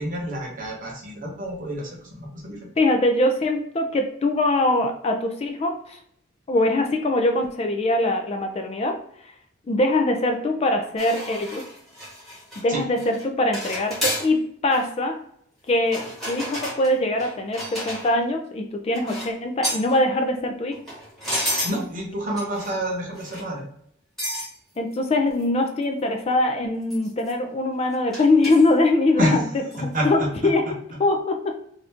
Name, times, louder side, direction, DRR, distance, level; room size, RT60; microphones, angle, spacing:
voice 1, 0.0-2.7 12.7-12.9 21.6-23.6 29.2-30.7, equal, 40° right, -1 dB, 0.9 m, -28 dB
voice 2, 2.8-6.0 6.5-9.0 9.2-9.3 9.7-11.6 12.6-15.2 15.7-20.8 24.8-29.4 29.8-31.6, left 2 dB, 30° left, 4 dB, 0.3 m, -22 dB
sound 1, 11.0-12.6 13.0-13.2 13.5-14.3 14.7-14.9 15.8-18.3 18.9-19.3 19.6-19.9 20.7-21.8 22.4-22.8 23.2-23.5 24.2-24.5 24.9-25.0 25.4-25.5 25.8-25.9 26.9-27.3 28.1-28.7 29.7-29.9, equal, ahead, 1.2 m, -31 dB
2.7 x 2.4 x 3.4 m, 0.69 s
head